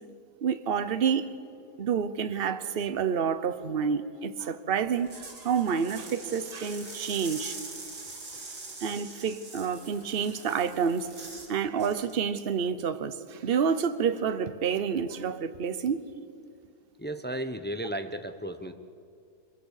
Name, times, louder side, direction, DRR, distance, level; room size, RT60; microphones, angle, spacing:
voice 1, 0.4-1.3 1.8-7.6 8.8-11.1 11.5-16.0, right 7 dB, 40° right, 12 dB, 1.0 m, -28 dB
sound 1, 4.9-11.5 11.8-12.1, right 3 dB, 75° right, 3.5 m, -43 dB
voice 2, 17.0-18.7, right 1 dB, 10° left, 8 dB, 0.5 m, -34 dB
26.0 x 22.0 x 6.6 m, 2.4 s
omnidirectional pair, 1.7 m